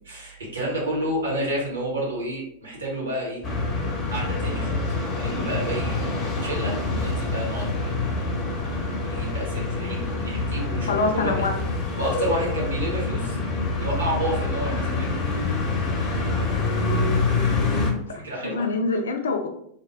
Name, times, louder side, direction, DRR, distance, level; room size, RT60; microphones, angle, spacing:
voice 1, 0.0-3.4 4.1-8.0 9.0-11.4 12.0-13.4 13.8-15.1 18.1-18.7, right 1 dB, 75° right, -4 dB, 1.0 m, -30 dB
sound 1, 3.4-17.9, left 3 dB, 30° left, 0.7 m, -26 dB
voice 2, 10.9-11.5 18.1-19.5, left 3 dB, 65° left, 4 dB, 0.4 m, -25 dB
2.2 x 2.0 x 3.2 m, 0.69 s
figure-of-eight pair, 90°, 0 cm